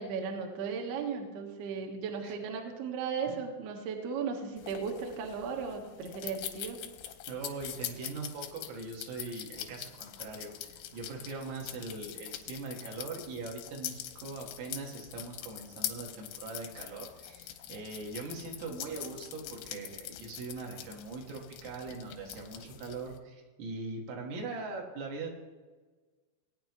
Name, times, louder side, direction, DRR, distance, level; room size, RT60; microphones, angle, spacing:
voice 1, 0.0-6.8, right 5 dB, 70° right, 2 dB, 2.7 m, -36 dB
sound 1, 4.6-23.2, left 11 dB, 85° left, 2.5 m, -44 dB
voice 2, 7.3-25.3, right 3 dB, 85° right, -1 dB, 4.2 m, -41 dB
19.0 x 9.4 x 3.0 m, 1.3 s
omnidirectional pair, 5.7 m